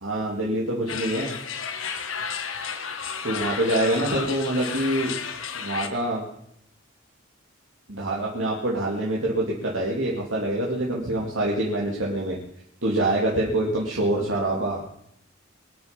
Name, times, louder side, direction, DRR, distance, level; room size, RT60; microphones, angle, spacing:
voice 1, 0.0-1.3 3.2-5.1 5.5-6.3 7.9-12.4 12.8-14.8, right 1 dB, 70° right, -4 dB, 2.7 m, -25 dB
sound 1, 0.9-5.9, left 6 dB, 80° left, 1.5 m, -32 dB
23.5 x 9.2 x 5.3 m, 0.73 s
head